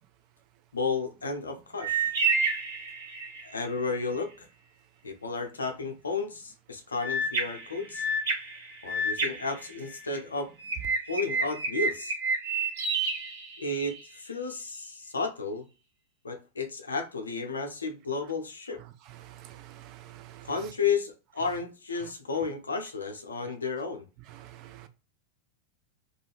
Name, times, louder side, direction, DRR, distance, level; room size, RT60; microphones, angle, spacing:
voice 1, 0.7-2.1 3.4-4.5 5.0-8.1 8.8-10.5 11.1-12.2 13.6-15.7 16.2-18.8 20.5-24.1, left 4 dB, 75° left, 0.5 m, -32 dB
sound 1, 1.8-3.5 7.0-10.2 10.6-14.0, right 3 dB, 60° right, 0.9 m, -30 dB
voice 2, 19.1-20.5 24.3-24.9, right 13 dB, 40° right, 0.4 m, -48 dB
2.4 x 2.2 x 3.3 m
figure-of-eight pair, 90°, 0 cm